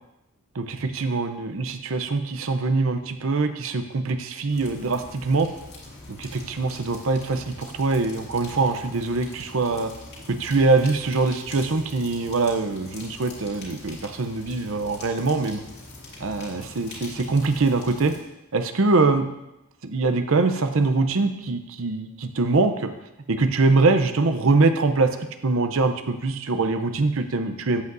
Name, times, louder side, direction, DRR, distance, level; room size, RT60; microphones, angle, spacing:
voice 1, 0.5-5.5 6.1-9.9 10.3-15.6 16.2-18.1 18.5-19.3 19.8-22.9 23.3-25.1 25.4-27.8, right 3 dB, 60° right, 8 dB, 0.6 m, -23 dB
sound 1, 4.5-18.2, left 2 dB, 50° left, 2.5 m, -43 dB
13.0 x 8.0 x 2.6 m, 0.92 s
head